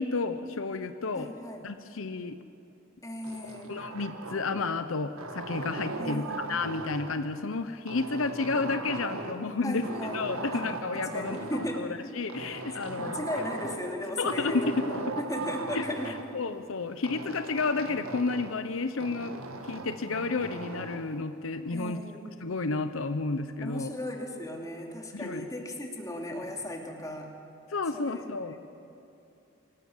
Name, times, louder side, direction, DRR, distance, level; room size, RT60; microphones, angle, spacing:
voice 1, 0.0-1.3 1.6-2.4 3.7-9.9 10.1-11.4 11.7-11.9 12.2-13.3 14.2-14.8 15.7-22.0 22.4-23.9 25.1-25.5 27.7-28.6, left 3 dB, 70° left, 10 dB, 0.8 m, -31 dB
voice 2, 1.1-1.7 3.0-3.7 6.0-6.5 9.6-10.3 10.5-10.7 11.1-11.9 12.7-16.2 21.7-22.3 23.6-27.3 27.9-28.6, left 1 dB, 15° left, 1 dB, 2.6 m, -36 dB
sound 1, 3.2-4.8 5.2-7.2 7.9-9.5 9.8-11.8 12.3-13.9 14.2-16.3 17.0-18.6 19.0-21.0, right 2 dB, 85° right, 1.9 m, -38 dB
25.0 x 18.0 x 7.3 m, 2.8 s
head